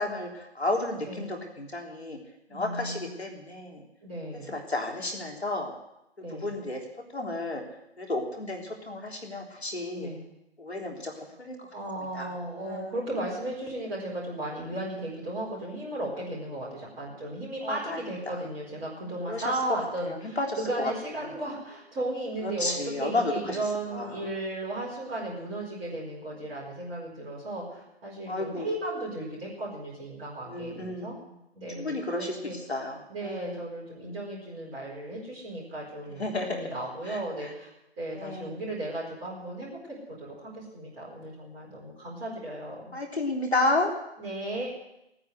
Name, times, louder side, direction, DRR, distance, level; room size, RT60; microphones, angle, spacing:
voice 1, 0.0-2.2 2.5-3.8 4.5-5.7 6.3-6.8 7.1-7.6 8.0-10.1 10.6-11.1 11.4-11.6 12.1-12.3 12.6-12.9 17.6-18.0 19.3-19.4 20.1-20.5 20.8-20.9 22.4-23.6 23.9-24.2 28.3-28.7 30.5-31.3 31.8-33.6 36.1-36.6 37.1-37.2 38.1-38.5 42.9-43.9, left 2 dB, 70° left, 1 dB, 3.7 m, -32 dB
voice 2, 2.5-3.1 4.0-4.6 6.2-6.6 9.9-10.2 11.7-31.1 31.5-32.6 33.1-37.7 38.0-42.9 44.2-44.7, right 1 dB, 15° right, -6 dB, 4.4 m, -35 dB
18.0 x 9.8 x 8.1 m, 0.87 s
figure-of-eight pair, 150°, 33 cm